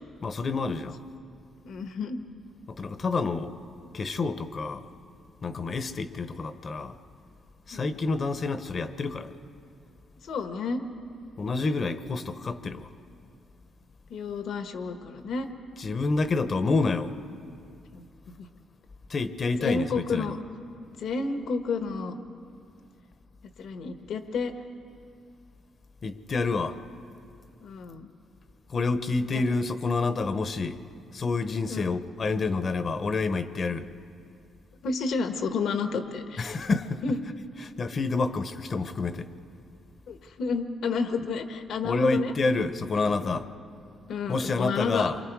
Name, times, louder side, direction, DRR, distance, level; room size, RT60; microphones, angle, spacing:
voice 1, 0.2-1.0 2.7-3.6 3.9-4.9 5.4-6.9 7.7-9.4 11.4-12.9 15.8-17.1 19.1-20.3 26.0-26.8 28.7-30.8 31.1-33.9 36.4-37.0 37.6-39.3 41.8-43.5 44.3-45.2, left 3 dB, 40° left, 0.9 m, -28 dB
voice 2, 1.6-2.2 7.7-8.0 10.2-10.8 14.1-15.5 17.9-18.5 19.6-20.4 21.0-22.1 23.6-24.5 27.6-28.1 29.3-29.4 31.7-31.9 34.8-36.6 37.0-37.2 40.1-42.3 42.9-43.4 44.1-45.1, left 4 dB, 75° left, 1.3 m, -31 dB
28.0 x 24.5 x 4.7 m
cardioid pair, 115°, 0 cm